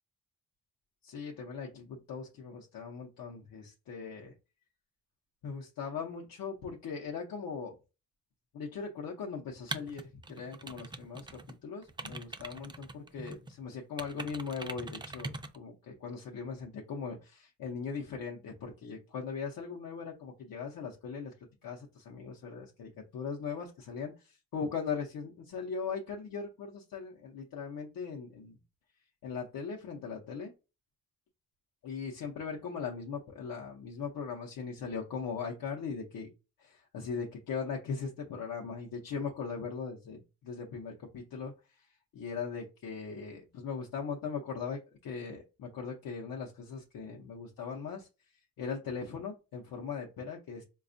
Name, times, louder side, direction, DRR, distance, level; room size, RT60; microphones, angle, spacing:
voice 1, 1.0-4.3 5.4-7.7 8.5-21.3 21.6-28.6 29.2-30.5 31.8-36.3 36.6-41.9 42.1-48.1 48.6-50.6, left 5 dB, 90° left, 0 dB, 0.6 m, -39 dB
sound 1, 9.7-11.5 11.8-13.5 14.0-15.6, right 2 dB, 15° right, 0.3 m, -42 dB
4.1 x 2.3 x 2.5 m, 0.28 s
wide cardioid pair, 100°, 34 cm